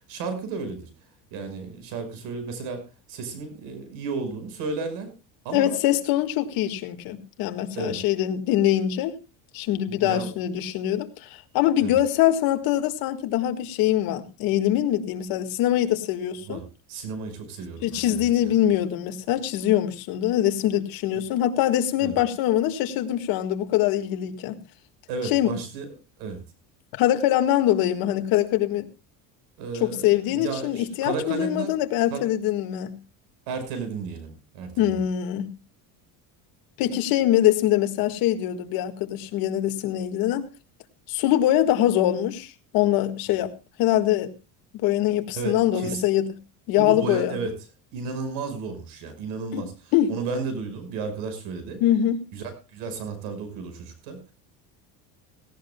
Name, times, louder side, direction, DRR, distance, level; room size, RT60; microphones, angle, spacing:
voice 1, 0.1-0.9 1.3-2.8 3.1-5.1 5.4-5.8 7.7-8.0 9.9-10.3 11.8-11.9 16.5-16.6 16.9-18.6 22.0-22.1 25.1-25.9 26.2-26.4 29.6-31.7 32.1-32.2 33.5-34.9 45.3-46.0 46.8-47.5 47.9-51.8 52.3-54.2, right 4 dB, 75° right, 9 dB, 5.8 m, -33 dB
voice 2, 5.5-9.2 9.5-16.6 17.8-24.6 25.2-25.5 27.0-28.9 29.8-33.0 34.8-35.5 36.8-40.5 41.1-43.5 43.8-44.3 44.8-46.3 46.7-47.4 49.5-49.6 49.9-50.1 51.8-52.2, left 12 dB, 65° left, 8 dB, 1.8 m, -23 dB
17.5 x 17.5 x 2.3 m, 0.28 s
cardioid pair, 150°, 38 cm